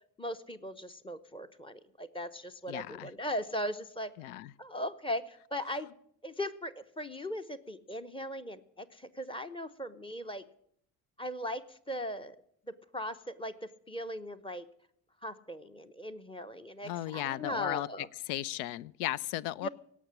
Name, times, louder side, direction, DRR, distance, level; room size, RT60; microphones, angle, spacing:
voice 1, 0.2-4.1 4.6-5.9 6.2-10.4 11.2-12.4 12.7-13.5 13.9-14.7 15.2-18.1 19.6-19.7, equal, 10° left, 10 dB, 0.8 m, -38 dB
voice 2, 2.7-3.1 4.2-4.5 16.8-17.9 18.3-19.7, left 14 dB, 70° left, 22 dB, 0.5 m, -36 dB
17.5 x 6.1 x 9.8 m, 0.69 s
figure-of-eight pair, 45°, 47 cm